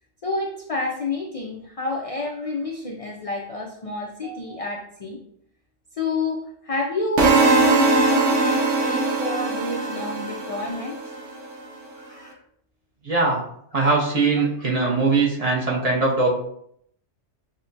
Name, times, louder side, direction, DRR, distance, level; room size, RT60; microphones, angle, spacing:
voice 1, 0.2-5.2 6.0-7.3 7.7-11.0 12.0-12.4 14.8-15.0, left 3 dB, 70° left, 0 dB, 0.3 m, -29 dB
sound 1, 7.2-11.2, right 3 dB, 85° right, 1.0 m, -20 dB
voice 2, 13.0-13.4 13.7-16.3, right 3 dB, 40° right, -3 dB, 0.7 m, -21 dB
6.3 x 2.1 x 2.6 m, 0.70 s
omnidirectional pair, 1.2 m